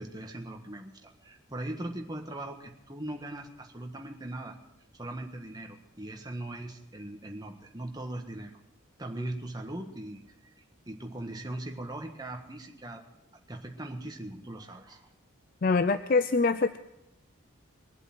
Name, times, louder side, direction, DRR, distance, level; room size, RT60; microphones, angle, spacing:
voice 1, 0.0-4.6 4.9-8.6 9.0-10.2 10.9-13.0 13.5-15.1, right 1 dB, 20° right, 3 dB, 1.5 m, -39 dB
voice 2, 15.6-16.8, left 4 dB, 45° left, 11 dB, 0.4 m, -24 dB
22.5 x 8.0 x 6.1 m, 0.88 s
head